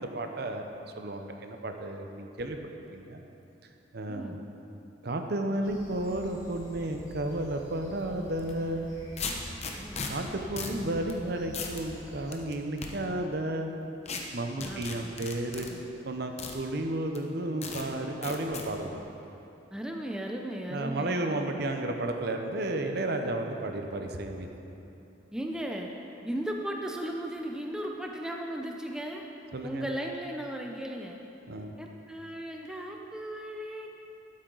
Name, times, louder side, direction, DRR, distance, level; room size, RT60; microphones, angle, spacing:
voice 1, 0.0-2.6 2.9-3.2 3.9-4.4 5.0-8.9 10.1-13.7 14.3-15.7 16.0-19.0 20.7-24.5 29.5-29.9 31.5-31.8, right 1 dB, 55° right, 4 dB, 0.7 m, -33 dB
sound 1, 5.6-12.3, equal, 20° left, 2.2 m, -48 dB
sound 2, 8.4-8.5 9.2-10.1 10.6-10.8 11.1-11.2 11.5-11.8 12.3-12.9 14.1-14.2 14.6-15.7 16.4-16.6 17.1-17.2 17.6-17.8 18.2-18.7, left 5 dB, 35° left, 0.9 m, -36 dB
voice 2, 14.6-15.2 15.5-15.8 19.7-21.7 25.3-25.9 26.2-29.2 29.6-31.2 31.8-33.9, right 1 dB, 5° right, 1 dB, 0.5 m, -36 dB
12.5 x 8.6 x 3.9 m, 3.0 s
head